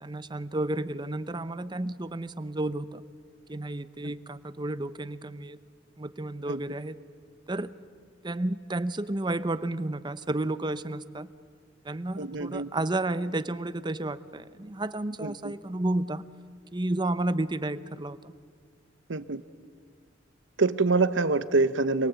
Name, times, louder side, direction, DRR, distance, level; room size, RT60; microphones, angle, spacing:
voice 1, 0.0-3.0 3.5-5.6 6.0-7.0 7.5-7.7 8.2-11.3 11.8-16.3 16.7-18.3, right 2 dB, 25° right, 14 dB, 0.7 m, -31 dB
voice 2, 12.2-12.7 15.2-15.5 19.1-19.4 20.6-22.1, right 3 dB, 75° right, 13 dB, 0.9 m, -25 dB
26.0 x 22.5 x 8.2 m, 2.1 s
head